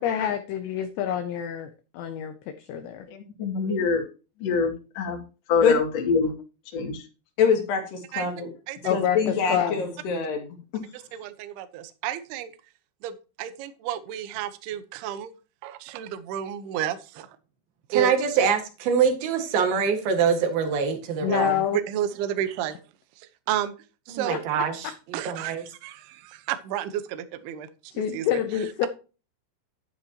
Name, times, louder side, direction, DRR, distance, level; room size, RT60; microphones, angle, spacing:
voice 1, 0.0-3.1 8.8-9.8 21.2-21.8 24.3-24.4 24.8-24.9 27.9-28.9, left 9 dB, 80° left, 2.6 m, -27 dB
voice 2, 3.1-4.0 4.4-5.2 5.5-6.3 6.7-7.1, left 4 dB, 45° left, 2.5 m, -25 dB
voice 3, 7.4-8.5 8.9-10.4 10.7-10.8, left 6 dB, 60° left, 3.5 m, -24 dB
voice 4, 10.9-12.5 13.0-15.3 15.6-17.3 17.9-18.1 21.2-22.7 23.2-23.7 24.1-24.4 25.1-25.6 25.8-27.7 28.1-28.3 28.5-28.9, right 11 dB, 80° right, 2.4 m, -31 dB
voice 5, 17.9-21.5 24.1-25.6, right 6 dB, 60° right, 3.0 m, -24 dB
11.0 x 9.7 x 2.9 m
omnidirectional pair, 5.9 m